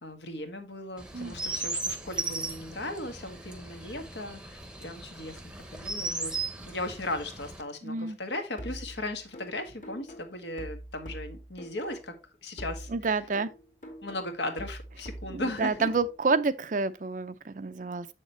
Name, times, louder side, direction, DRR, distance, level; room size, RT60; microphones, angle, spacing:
voice 1, 0.0-12.1 12.4-12.9 14.0-15.9, left 1 dB, 75° left, 1.6 m, -37 dB
Chirp tweet, 1.0-7.6, right 3 dB, 5° right, 0.8 m, -37 dB
voice 2, 7.8-8.2 12.9-13.5 15.3-18.1, right 4 dB, 45° right, 0.5 m, -29 dB
sound 1, 8.6-12.3 12.6-16.3, right 1 dB, 45° left, 2.2 m, -44 dB
7.4 x 6.5 x 3.1 m
head